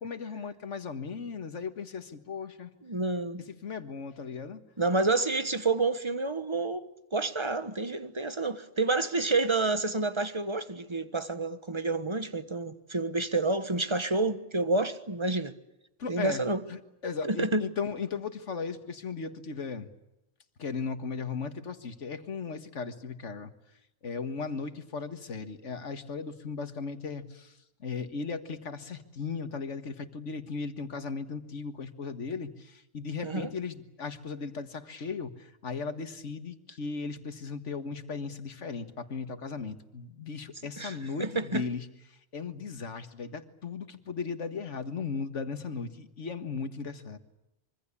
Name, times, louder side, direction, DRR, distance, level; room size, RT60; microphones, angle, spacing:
voice 1, 0.0-2.7 3.6-4.6 16.0-16.4 16.7-19.9 20.6-23.5 24.0-27.5 27.8-41.9 42.3-47.2, left 5 dB, 80° left, 2.0 m, -37 dB
voice 2, 2.8-3.4 4.8-15.5 16.1-16.6 17.2-17.6 33.2-33.5 40.8-41.6, right 3 dB, 25° right, 1.4 m, -29 dB
25.5 x 24.0 x 8.5 m
omnidirectional pair, 1.2 m